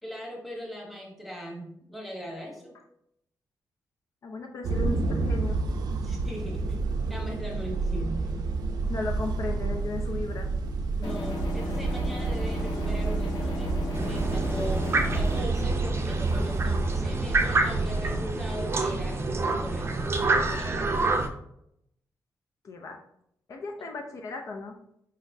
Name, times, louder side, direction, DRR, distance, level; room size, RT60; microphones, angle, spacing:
voice 1, 0.0-2.7 6.0-6.8 7.1-8.5 10.9-13.8 14.0-19.2 19.6-20.1 20.5-21.3, equal, ahead, -1 dB, 1.0 m, -39 dB
voice 2, 4.2-5.6 8.9-10.5 22.6-23.0 23.5-24.8, left 3 dB, 55° left, 3 dB, 0.5 m, -35 dB
sound 1, 4.6-18.1, right 3 dB, 80° right, 0.5 m, -29 dB
sound 2, 11.0-15.4, left 1 dB, 85° left, 1.1 m, -34 dB
sound 3, 13.9-21.3, right 3 dB, 40° right, 0.5 m, -28 dB
4.9 x 4.0 x 2.7 m, 0.75 s
wide cardioid pair, 145°, 7 cm